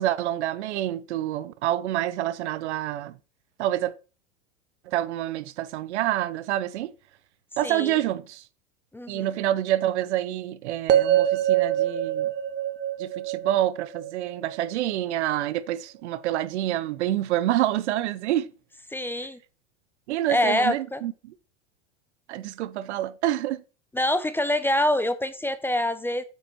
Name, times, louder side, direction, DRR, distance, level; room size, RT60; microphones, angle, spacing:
voice 1, 0.0-3.2 3.6-3.9 4.9-6.9 7.6-8.4 9.1-12.3 13.0-18.5 20.1-21.1 22.3-23.6, right 13 dB, 70° right, 0.7 m, -27 dB
voice 2, 7.6-8.0 8.9-9.3 18.9-19.4 20.3-21.0 23.9-26.2, left 1 dB, 5° left, 0.7 m, -25 dB
sound 1, 10.9-15.0, right 11 dB, 30° right, 0.9 m, -24 dB
8.8 x 5.1 x 4.3 m
hypercardioid pair, 95°, 35 cm